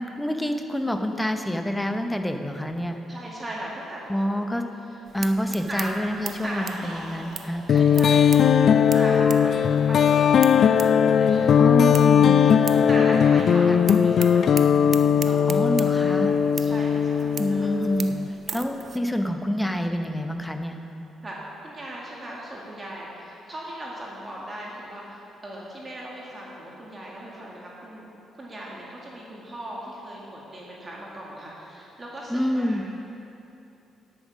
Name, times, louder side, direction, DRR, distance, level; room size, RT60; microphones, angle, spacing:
voice 1, 0.0-3.0 4.1-4.6 5.1-7.8 11.6-12.4 13.7-13.8 15.5-16.4 17.4-20.8 32.3-32.8, equal, 5° left, 5 dB, 0.8 m, -27 dB
voice 2, 3.1-4.0 4.3-4.4 5.7-6.0 6.4-7.3 7.7-11.5 12.7-17.7 18.5-18.7 21.2-28.1 28.3-32.9, right 1 dB, 25° right, -4 dB, 1.9 m, -38 dB
sound 1, 5.1-19.0, right 6 dB, 50° right, 0.6 m, -41 dB
sound 2, 5.9-9.0, right 2 dB, 90° right, 2.0 m, -46 dB
sound 3, 7.7-18.3, left 7 dB, 60° left, 0.3 m, -19 dB
9.3 x 9.0 x 6.3 m, 3.0 s
cardioid pair, 90°, 0 cm